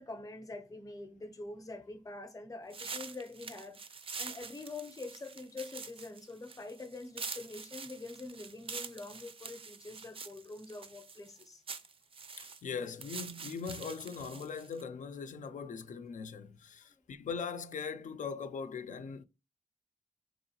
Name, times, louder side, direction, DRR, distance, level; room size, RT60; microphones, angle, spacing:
voice 1, 0.0-3.8 4.2-11.6, left 3 dB, 25° left, 0.6 m, -45 dB
sound 1, 2.7-14.8, right 5 dB, 40° right, 0.4 m, -46 dB
voice 2, 12.4-19.2, left 5 dB, 65° left, 0.4 m, -40 dB
3.7 x 3.0 x 2.8 m
wide cardioid pair, 110°, 14 cm